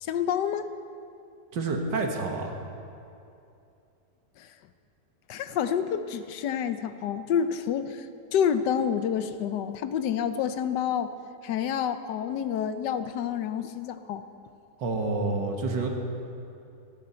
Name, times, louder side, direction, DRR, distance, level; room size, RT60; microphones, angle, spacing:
voice 1, 0.0-0.7 4.4-4.5 5.3-8.1 8.3-11.1 11.4-14.2, left 8 dB, 75° left, 11 dB, 1.3 m, -28 dB
voice 2, 1.5-2.5 14.8-15.9, right 3 dB, 90° right, 2 dB, 2.1 m, -28 dB
18.5 x 14.5 x 4.4 m, 2.6 s
omnidirectional pair, 1.9 m